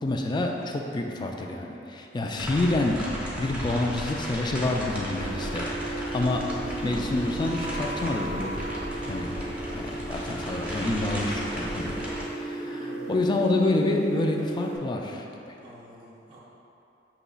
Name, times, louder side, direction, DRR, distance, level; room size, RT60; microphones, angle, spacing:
voice 1, 0.0-6.5 6.8-8.6 9.1-9.3 9.7-12.0 12.3-15.6, left 2 dB, 25° left, 2 dB, 0.3 m, -28 dB
sound 1, 2.3-12.2, equal, 10° right, 0.9 m, -35 dB
sound 2, 5.1-14.8, right 2 dB, 85° right, 0.5 m, -35 dB
voice 2, 12.6-13.2 15.6-16.4, right 1 dB, 30° right, -6 dB, 0.6 m, -49 dB
6.6 x 2.9 x 2.4 m, 2.8 s
head